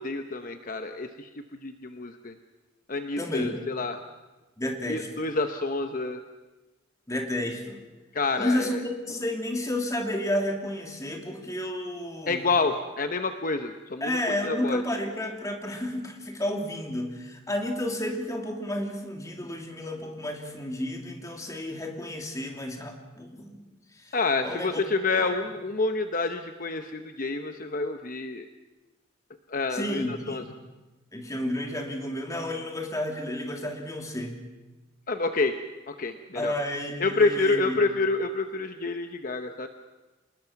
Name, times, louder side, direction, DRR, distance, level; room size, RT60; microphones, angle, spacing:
voice 1, 0.0-2.3 2.9-4.0 4.9-6.2 8.1-8.8 12.3-14.1 14.4-14.8 24.1-28.5 29.5-30.4 35.1-35.6 35.9-36.5 37.0-39.7, left 3 dB, 45° left, 7 dB, 0.9 m, -28 dB
voice 2, 3.2-3.6 4.6-5.3 7.1-7.8 8.4-12.4 14.0-23.6 24.0-24.1 24.4-24.8 25.2-25.3 29.7-30.6 31.1-34.4 36.3-37.8, left 1 dB, 20° left, 2 dB, 2.7 m, -31 dB
27.5 x 20.0 x 5.9 m, 1.2 s
head